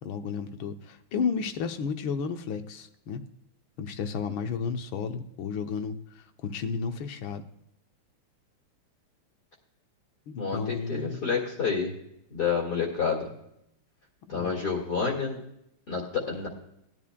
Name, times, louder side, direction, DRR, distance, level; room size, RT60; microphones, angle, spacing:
voice 1, 0.0-3.2 3.8-7.4 10.3-11.3 14.3-14.5, left 5 dB, 70° left, 7 dB, 1.5 m, -33 dB
voice 2, 10.4-11.9 12.3-13.2 14.3-15.4 15.9-16.5, left 5 dB, 45° left, -3 dB, 2.4 m, -29 dB
18.5 x 11.0 x 2.2 m, 0.77 s
omnidirectional pair, 2.4 m